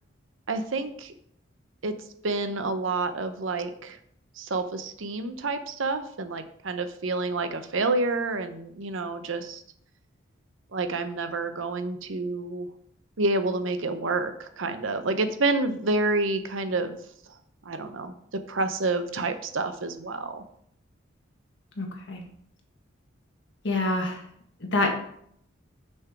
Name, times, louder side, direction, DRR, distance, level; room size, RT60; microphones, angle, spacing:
voice 1, 0.5-1.1 1.8-1.9 2.2-4.0 4.4-9.6 10.7-12.7 13.2-17.0 17.6-20.4, right 3 dB, 75° right, 9 dB, 0.8 m, -28 dB
voice 2, 21.8-22.2 23.6-24.2 24.6-24.9, left 2 dB, 60° left, 2 dB, 1.6 m, -26 dB
6.3 x 6.0 x 4.6 m, 0.69 s
head